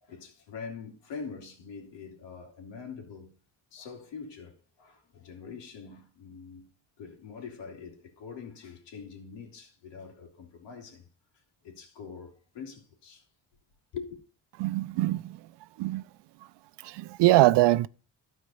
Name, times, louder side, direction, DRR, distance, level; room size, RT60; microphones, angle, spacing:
voice 1, 0.0-3.3 3.7-6.7 7.0-11.1 11.3-13.3 13.9-14.2, left 5 dB, 80° left, 2.7 m, -44 dB
voice 2, 14.6-15.4 15.8-16.0 16.8-17.9, right 17 dB, 70° right, 0.6 m, -23 dB
12.5 x 4.5 x 5.5 m
cardioid pair, 80°, 43 cm